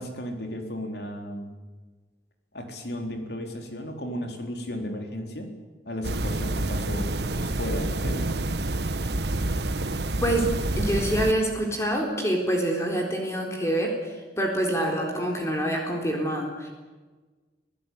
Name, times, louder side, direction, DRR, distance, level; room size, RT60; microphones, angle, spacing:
voice 1, 0.0-1.5 2.5-5.5 5.8-8.3, equal, 65° left, 4 dB, 3.9 m, -34 dB
sound 1, 6.0-11.3, right 2 dB, 70° right, 1.3 m, -28 dB
voice 2, 10.2-10.5 10.8-14.0 14.4-16.7, right 1 dB, 15° left, 1 dB, 3.9 m, -26 dB
27.0 x 16.5 x 9.4 m, 1.3 s
head